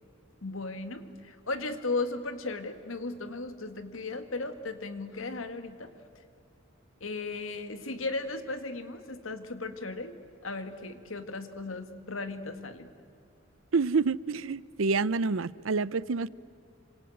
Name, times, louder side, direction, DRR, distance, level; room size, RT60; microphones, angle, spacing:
voice 1, 0.4-5.9 7.0-12.9, left 3 dB, 80° left, 2.0 m, -36 dB
voice 2, 13.7-16.3, right 4 dB, 80° right, 0.6 m, -28 dB
27.5 x 26.0 x 7.9 m
head